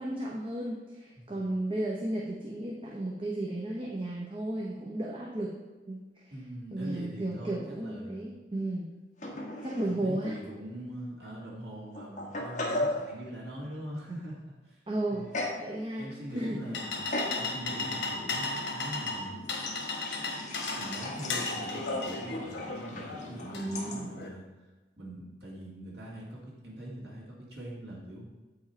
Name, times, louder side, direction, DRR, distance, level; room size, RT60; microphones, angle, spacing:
voice 1, 0.0-5.5 5.9-6.3 6.7-8.9 9.6-10.4 14.9-15.3 15.6-16.1 16.3-16.6 23.5-24.1, right 1 dB, 30° right, -3 dB, 0.8 m, -34 dB
voice 2, 6.3-8.3 9.3-9.4 9.8-14.8 15.1-15.4 16.0-17.0 17.3-19.5 20.7-24.4 25.0-28.3, right 1 dB, 65° right, -4 dB, 2.1 m, -43 dB
sound 1, 9.2-9.9 10.2-10.3 11.2-11.3 11.9-13.1 15.3-15.7 16.1-16.5 17.1-17.5 18.0-18.2 19.6-24.0, left 1 dB, 45° left, 1.1 m, -37 dB
sound 2, 16.3-24.3, left 3 dB, 85° left, 1.3 m, -35 dB
8.3 x 4.9 x 4.4 m, 1.2 s
head